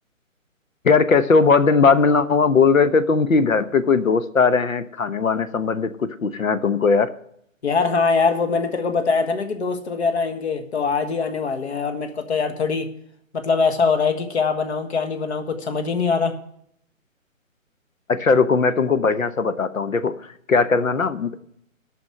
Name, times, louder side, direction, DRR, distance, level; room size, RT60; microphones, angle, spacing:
voice 1, 0.8-7.1 18.1-21.4, left 4 dB, 75° left, 12 dB, 1.0 m, -19 dB
voice 2, 7.6-12.9 13.3-16.4, left 5 dB, 50° left, 7 dB, 1.6 m, -22 dB
9.5 x 6.3 x 8.3 m, 0.68 s
figure-of-eight pair, 140°, 41 cm